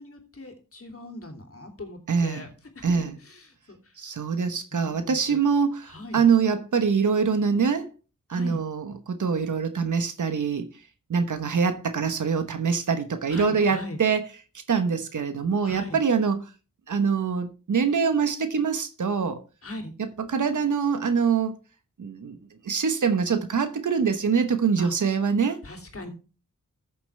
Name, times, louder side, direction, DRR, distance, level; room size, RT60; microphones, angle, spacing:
voice 1, 0.0-2.5 2.7-3.9 4.7-5.4 5.9-6.2 8.3-8.6 13.3-14.0 15.6-16.0 19.6-19.9 24.8-24.9 25.6-26.1, left 2 dB, 45° left, 2.9 m, -39 dB
voice 2, 2.1-2.5 2.8-3.2 4.0-7.9 8.3-10.7 11.1-14.2 14.5-16.5 16.9-19.4 20.0-21.6 22.0-22.4 22.6-25.6, right 6 dB, 70° right, 1.2 m, -24 dB
14.0 x 7.0 x 3.4 m
cardioid pair, 65°, 31 cm